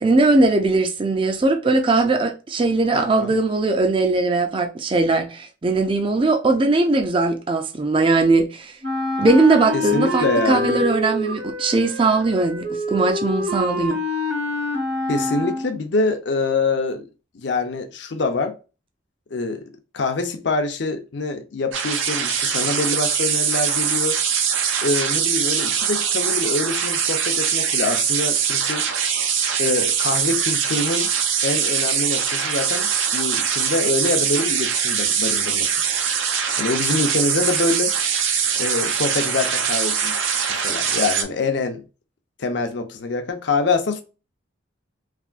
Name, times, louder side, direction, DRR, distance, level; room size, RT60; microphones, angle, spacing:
voice 1, 0.0-8.8 9.2-14.0, right 3 dB, 25° right, 0.3 m, -19 dB
voice 2, 2.9-3.3 9.7-10.9 15.1-17.0 17.3-18.5 19.3-19.6 19.9-24.2 24.8-28.9 29.6-31.1 31.4-35.7 36.6-37.9 38.6-40.2 40.5-41.8 42.4-44.0, left 3 dB, 65° left, 0.6 m, -25 dB
Wind instrument woodwind instrument, 8.8-15.8, left 1 dB, 65° right, 1.0 m, -26 dB
sound 1, 21.7-41.2, right 7 dB, 85° right, 0.5 m, -22 dB
3.3 x 2.5 x 2.4 m
head